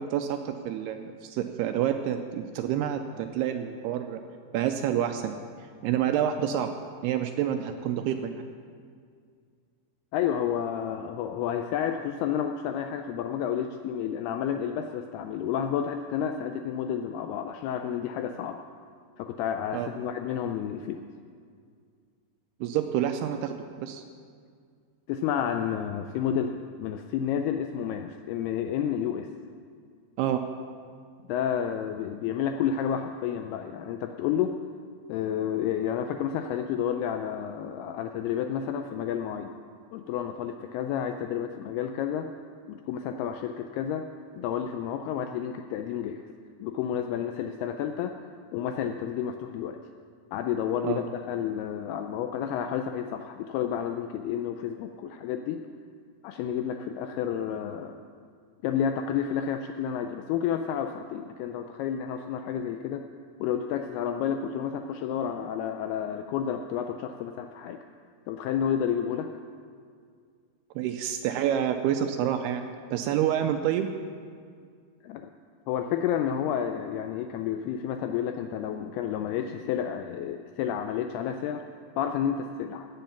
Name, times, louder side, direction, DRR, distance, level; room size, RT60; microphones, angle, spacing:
voice 1, 0.0-4.2 4.5-5.3 5.8-6.7 7.0-8.4 19.7-19.9 22.6-24.0 30.2-30.4 50.8-51.0 70.8-72.6 72.9-73.9, right 10 dB, 85° right, 6 dB, 2.4 m, -28 dB
voice 2, 10.1-18.6 19.2-21.0 25.1-29.3 31.3-34.5 35.1-39.5 39.9-42.3 42.7-44.1 44.4-46.2 46.6-48.2 48.5-49.8 50.3-55.6 56.2-58.0 58.6-63.0 63.4-67.8 68.3-69.3 75.0-75.3 75.7-81.6 82.0-82.9, left 9 dB, 85° left, 6 dB, 2.3 m, -30 dB
14.5 x 9.1 x 5.8 m, 2.1 s
omnidirectional pair, 5.0 m